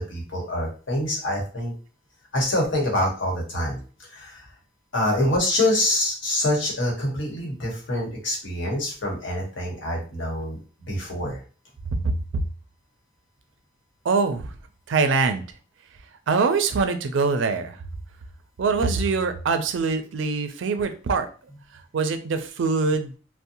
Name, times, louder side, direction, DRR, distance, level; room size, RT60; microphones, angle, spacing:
voice 1, 0.0-1.7 2.3-3.8 4.1-4.5 4.9-10.6 10.9-11.4, left 1 dB, 75° left, -2 dB, 1.1 m, -25 dB
voice 2, 14.0-14.5 14.9-15.4 16.3-17.8 18.6-21.3 21.9-23.1, right 4 dB, 75° right, 8 dB, 0.4 m, -23 dB
2.7 x 2.1 x 2.6 m, 0.37 s
head